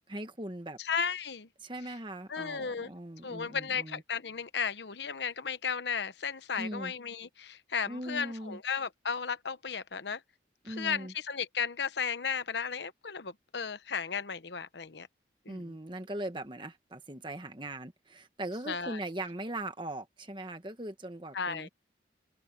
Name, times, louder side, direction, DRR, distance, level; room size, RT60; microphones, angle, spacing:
voice 1, 0.1-0.8 1.6-4.0 6.6-6.9 7.9-8.6 10.6-11.1 15.5-21.7, right 1 dB, 25° right, 1.4 m, -40 dB
voice 2, 0.8-1.5 2.3-2.9 3.2-10.2 10.6-15.1 15.5-15.8 18.7-19.0 21.3-21.7, left 6 dB, 70° left, 0.9 m, -34 dB
open air
head